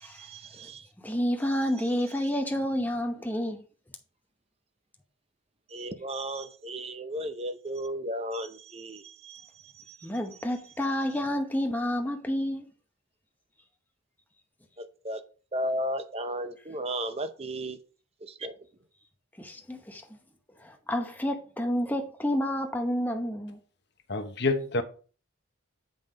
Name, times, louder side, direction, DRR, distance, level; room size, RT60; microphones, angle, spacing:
voice 1, 0.2-0.9 5.7-9.4 15.0-15.2 15.5-17.8 18.4-18.5, right 1 dB, 30° right, 0.6 m, -34 dB
voice 2, 1.0-3.6 10.0-12.7 19.4-20.0 20.6-23.6, equal, 10° left, 0.8 m, -29 dB
voice 3, 24.1-24.8, left 3 dB, 50° left, 0.9 m, -27 dB
7.4 x 5.3 x 3.8 m
head